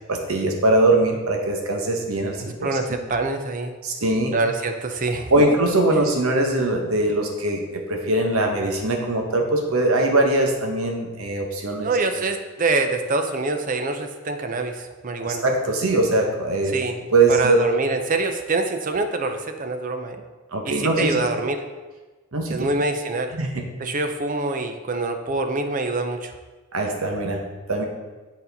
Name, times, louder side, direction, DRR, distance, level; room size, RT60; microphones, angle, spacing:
voice 1, 0.1-2.8 3.8-4.3 5.3-11.9 15.2-16.8 17.1-17.6 20.5-21.2 22.3-22.7 23.3-23.7 26.7-27.4 27.7-27.8, right 2 dB, 70° right, 2 dB, 1.0 m, -21 dB
voice 2, 2.6-3.8 4.3-5.3 11.8-15.4 16.7-17.0 17.3-20.2 20.6-21.6 22.5-23.3 23.8-26.3, right 3 dB, 35° right, 6 dB, 0.5 m, -25 dB
8.0 x 4.2 x 4.0 m, 1.3 s
head